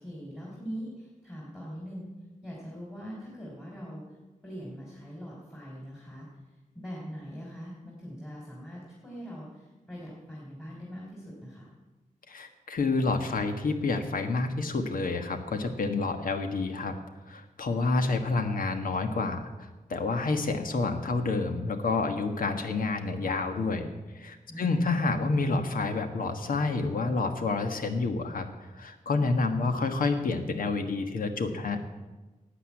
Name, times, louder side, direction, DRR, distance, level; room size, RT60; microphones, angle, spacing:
voice 1, 0.0-2.1 2.4-4.2 4.4-11.7 24.5-24.9, equal, 15° left, -4 dB, 3.5 m, -42 dB
voice 2, 12.3-16.9 17.3-23.9 24.1-31.9, left 3 dB, 75° left, 7 dB, 1.4 m, -29 dB
12.5 x 8.4 x 8.4 m, 1.2 s
wide cardioid pair, 120°, 14 cm